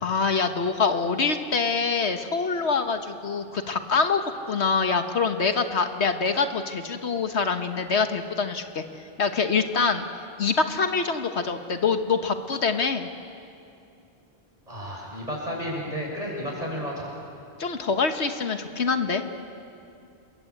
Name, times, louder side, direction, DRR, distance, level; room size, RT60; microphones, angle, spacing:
voice 1, 0.0-4.2 4.5-8.8 9.2-10.0 10.4-13.1 17.6-19.2, left 5 dB, 75° left, 7 dB, 1.6 m, -25 dB
voice 2, 14.7-17.1, equal, 35° right, -2 dB, 7.5 m, -32 dB
29.0 x 22.0 x 8.7 m, 2.6 s
omnidirectional pair, 1.1 m